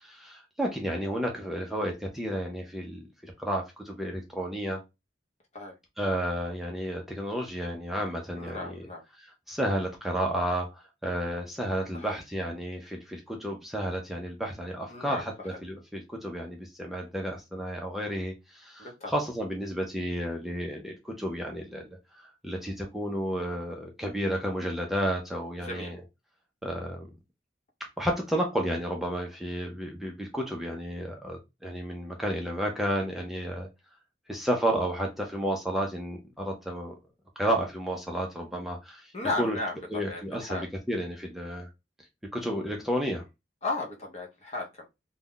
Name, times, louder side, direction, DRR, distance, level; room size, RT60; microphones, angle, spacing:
voice 1, 0.0-4.8 6.0-8.8 9.5-21.9 22.2-26.0 26.6-27.1 28.0-33.7 34.3-37.0 37.4-39.1 39.4-39.6 39.9-41.7 42.3-43.2, equal, ahead, 0.4 m, -32 dB
voice 2, 8.4-9.0 11.9-12.2 14.9-15.6 18.8-19.1 25.6-25.9 39.1-40.7 43.6-44.9, left 2 dB, 40° left, 0.7 m, -35 dB
2.3 x 2.1 x 3.6 m
head